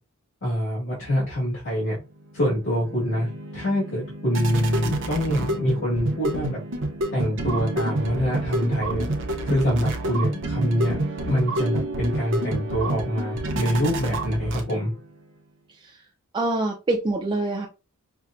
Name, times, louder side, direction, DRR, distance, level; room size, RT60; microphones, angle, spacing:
voice 1, 0.4-2.0 2.3-3.3 3.5-6.6 7.1-9.1 9.4-14.9, equal, 60° left, -6 dB, 1.7 m, -25 dB
sound 1, 2.2-15.1, right 1 dB, 55° right, 0.7 m, -29 dB
voice 2, 16.3-17.7, right 2 dB, 20° right, -1 dB, 0.4 m, -25 dB
5.6 x 2.1 x 2.5 m, 0.29 s
head